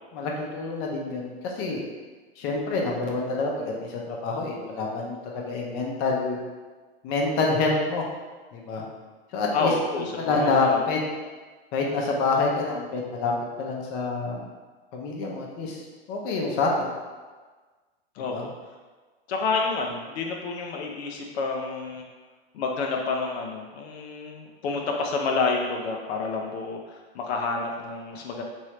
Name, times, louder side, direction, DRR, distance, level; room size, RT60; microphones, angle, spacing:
voice 1, 0.1-1.8 2.4-6.4 7.0-8.0 8.5-8.8 9.3-9.7 10.2-11.0 11.7-13.3 13.6-14.4 14.9-15.8 16.1-16.9 18.2-18.5, left 3 dB, 45° left, -1 dB, 0.7 m, -27 dB
voice 2, 9.5-10.8 18.2-18.5 19.3-22.0 22.5-28.4, left 3 dB, 85° left, 1 dB, 0.6 m, -29 dB
3.2 x 2.7 x 3.0 m, 1.4 s
supercardioid pair, 130°, 31 cm